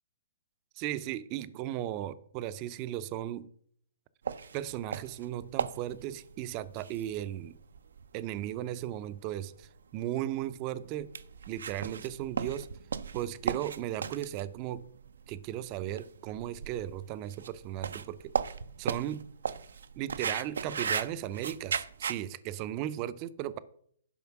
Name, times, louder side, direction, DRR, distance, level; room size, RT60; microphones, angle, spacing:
voice 1, 0.8-3.5 4.5-7.6 8.1-11.1 11.5-12.7 13.1-14.9 15.3-18.3 18.8-19.3 20.0-23.6, right 12 dB, 35° right, 0.6 m, -36 dB
sound 1, 4.3-22.2, right 6 dB, 80° right, 0.6 m, -38 dB
11.0 x 5.1 x 5.9 m
hypercardioid pair, 140°, 0 cm